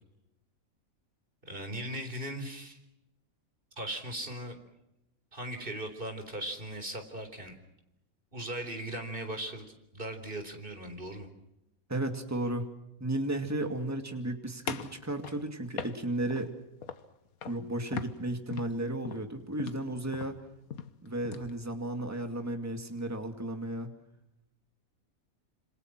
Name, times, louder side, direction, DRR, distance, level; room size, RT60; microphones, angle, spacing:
voice 1, 1.4-2.8 3.8-4.6 5.3-7.5 8.3-9.6 9.9-11.3, right 1 dB, 40° right, 6 dB, 4.1 m, -38 dB
voice 2, 11.9-12.7 13.0-16.5 17.5-20.4 21.0-23.9, right 1 dB, 10° right, 5 dB, 2.4 m, -34 dB
sound 1, 14.7-16.5 16.8-17.1 17.4-17.6 17.9-21.5, left 7 dB, 85° left, 1.7 m, -40 dB
27.5 x 26.0 x 6.1 m, 0.87 s
omnidirectional pair, 1.5 m